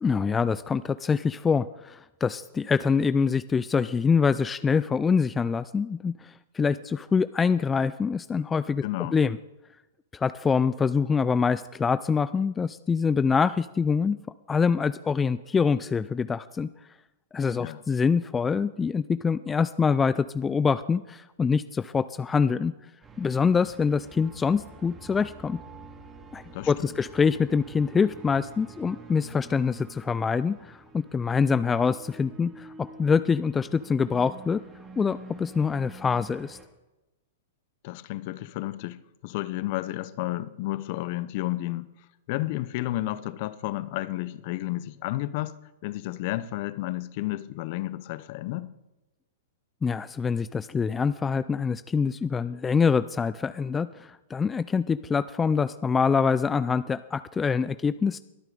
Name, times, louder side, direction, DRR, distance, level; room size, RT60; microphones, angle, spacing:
voice 1, 0.0-8.8 9.1-9.4 10.1-14.2 14.5-16.7 17.3-22.7 23.2-25.6 26.3-34.6 35.0-36.6 49.8-58.2, left 5 dB, 15° left, 0.3 m, -25 dB
voice 2, 8.8-9.2 17.6-17.8 26.5-27.0 37.8-41.9 42.3-45.6 45.8-48.7, left 16 dB, 50° left, 0.7 m, -32 dB
sound 1, 23.0-36.7, right 3 dB, 20° right, 2.1 m, -48 dB
22.0 x 9.0 x 3.8 m
hypercardioid pair, 110°, 0 cm